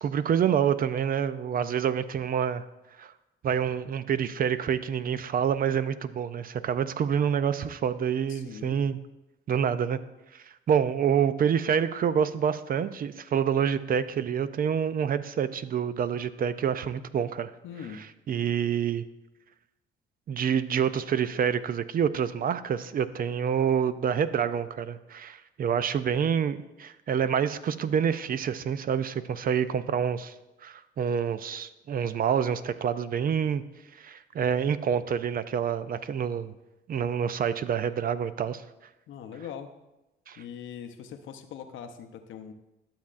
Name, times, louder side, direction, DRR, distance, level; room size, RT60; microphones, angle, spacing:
voice 1, 0.0-2.6 3.0-3.1 3.4-9.0 9.5-10.0 10.3-17.5 18.3-19.0 20.3-30.3 30.6-33.6 34.0-36.5 36.9-38.6 40.3-40.4, right 8 dB, 45° right, 14 dB, 0.4 m, -27 dB
voice 2, 8.3-8.9 17.6-18.1 26.1-26.2 39.1-39.7 40.4-42.5, left 8 dB, 80° left, 7 dB, 0.7 m, -42 dB
11.5 x 7.1 x 2.5 m, 0.99 s
cardioid pair, 90°, 20 cm